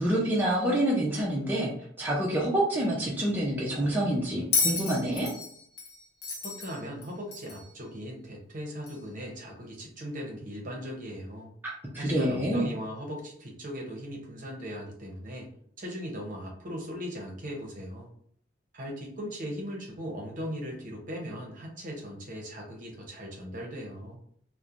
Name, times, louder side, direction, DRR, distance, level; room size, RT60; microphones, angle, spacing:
voice 1, 0.0-1.7 2.0-5.3 11.9-12.7, right 1 dB, 10° right, -5 dB, 0.5 m, -27 dB
Bell, 4.5-7.7 8.9-9.0, left 4 dB, 55° left, 0.6 m, -31 dB
voice 2, 6.3-11.5 12.0-15.5 15.8-18.1 18.7-24.2, equal, 45° right, 0 dB, 0.7 m, -38 dB
3.0 x 2.1 x 2.4 m, 0.62 s
head